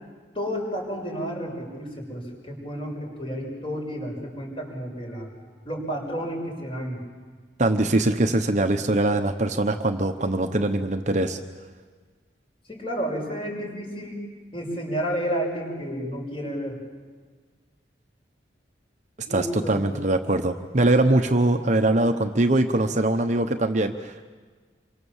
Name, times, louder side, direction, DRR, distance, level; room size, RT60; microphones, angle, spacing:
voice 1, 0.3-5.3 5.6-7.0 12.7-14.2 14.5-16.8 19.3-19.9, equal, 30° left, 1 dB, 6.4 m, -31 dB
voice 2, 7.6-11.4 19.3-24.2, right 2 dB, 40° right, 6 dB, 1.0 m, -22 dB
27.5 x 24.5 x 7.3 m, 1.5 s
head